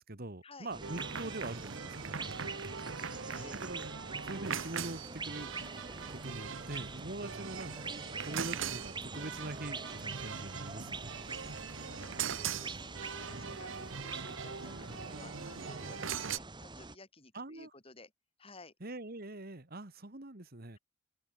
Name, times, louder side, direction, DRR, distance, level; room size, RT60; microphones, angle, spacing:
voice 1, 0.0-2.8 3.6-3.9 4.2-5.5 6.1-8.0 8.2-11.2 13.3-13.5 15.7-15.8 17.3-17.7 18.8-20.8, right 2 dB, 50° right, 2.1 m, -44 dB
sound 1, 0.7-17.0, right 3 dB, 25° right, 2.5 m, -45 dB
sound 2, 0.8-16.4, right 6 dB, 75° right, 1.2 m, -41 dB
voice 2, 2.7-3.6 11.0-11.2 11.8-18.1 18.4-18.7, left 3 dB, 30° left, 4.6 m, -56 dB
head